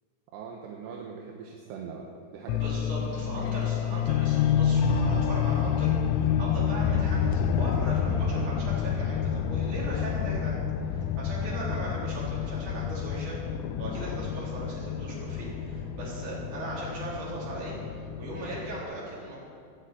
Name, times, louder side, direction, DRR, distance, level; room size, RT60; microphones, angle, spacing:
voice 1, 0.3-2.8, right 6 dB, 70° right, 0 dB, 2.8 m, -41 dB
sound 1, 2.5-18.8, left 8 dB, 90° left, 3.2 m, -28 dB
voice 2, 2.5-10.6 10.8-13.4 13.8-19.4, right 1 dB, 40° right, -6 dB, 5.1 m, -38 dB
15.5 x 8.9 x 8.7 m, 2.3 s
omnidirectional pair, 5.6 m